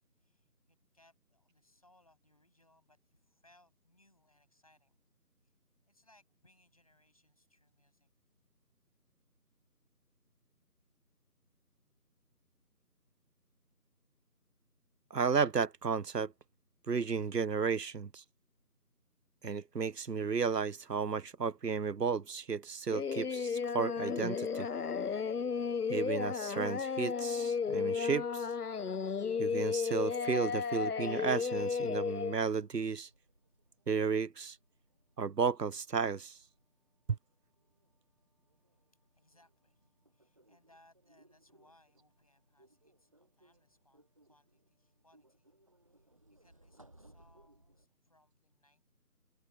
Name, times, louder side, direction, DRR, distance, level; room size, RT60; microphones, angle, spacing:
voice 1, 0.2-5.0 5.4-5.5 5.9-8.1 38.5-45.6 45.9-48.9, left 1 dB, 20° left, 7.8 m, -69 dB
voice 2, 15.1-16.3 16.9-18.2 19.4-24.7 25.9-28.5 29.4-33.1 33.9-34.6 35.2-36.4, right 5 dB, 80° right, 0.9 m, -33 dB
Singing, 22.9-32.3, left 6 dB, 70° left, 0.7 m, -34 dB
sound 1, 31.4-47.9, right 1 dB, 20° right, 7.5 m, -65 dB
figure-of-eight pair, 180°, 48 cm